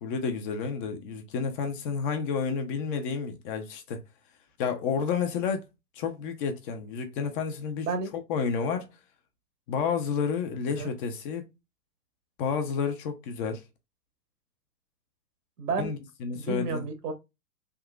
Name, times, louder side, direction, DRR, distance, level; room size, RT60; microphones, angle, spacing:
voice 1, 0.0-4.0 4.6-5.7 5.9-7.9 8.1-8.9 9.7-11.4 12.4-13.6 15.8-16.8, left 6 dB, 35° left, 0.6 m, -30 dB
voice 2, 15.6-15.9 16.3-17.1, right 4 dB, 70° right, 1.4 m, -31 dB
3.7 x 2.7 x 2.3 m
hypercardioid pair, 115°, 48 cm